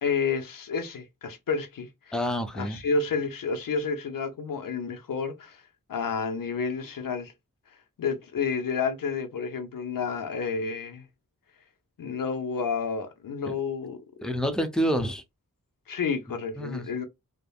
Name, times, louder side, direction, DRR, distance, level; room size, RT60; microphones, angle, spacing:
voice 1, 0.0-2.1 2.6-5.6 5.9-7.3 8.0-11.0 12.0-14.0 15.9-17.1, left 5 dB, 85° left, 0.6 m, -30 dB
voice 2, 2.1-2.8 13.5-13.6 14.2-15.2 16.6-16.8, equal, ahead, 0.6 m, -28 dB
3.3 x 2.1 x 2.2 m
cardioid pair, 45°, 33 cm